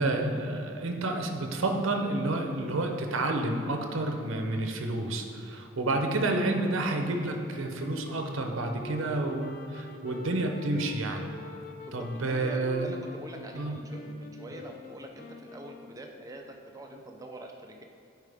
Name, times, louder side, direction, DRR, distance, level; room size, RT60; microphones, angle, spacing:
voice 1, 0.0-11.3 11.9-12.9 13.5-13.8, right 2 dB, 70° right, 4 dB, 0.7 m, -30 dB
sound 1, 6.2-16.2, left 2 dB, 40° left, 0.4 m, -46 dB
voice 2, 11.9-17.8, right 1 dB, 15° right, 2 dB, 0.5 m, -44 dB
8.5 x 4.7 x 3.5 m, 2.6 s
head